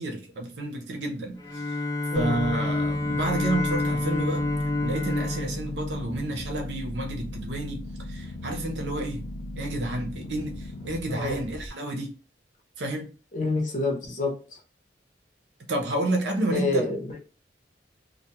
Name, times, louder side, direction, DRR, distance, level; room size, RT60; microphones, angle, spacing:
voice 1, 0.0-1.6 2.1-4.5 4.8-9.3 9.6-12.1 12.8-13.1 15.7-16.9, right 1 dB, 75° right, 0.6 m, -30 dB
Bowed string instrument, 1.4-6.6, left 2 dB, 20° left, 0.4 m, -29 dB
sound 1, 2.1-11.7, equal, 25° right, 0.7 m, -40 dB
sound 2, 2.3-10.9, left 3 dB, 85° left, 0.4 m, -41 dB
voice 2, 11.1-11.4 13.3-14.6 16.5-17.1, left 2 dB, 45° left, 0.7 m, -28 dB
2.2 x 2.2 x 2.8 m
head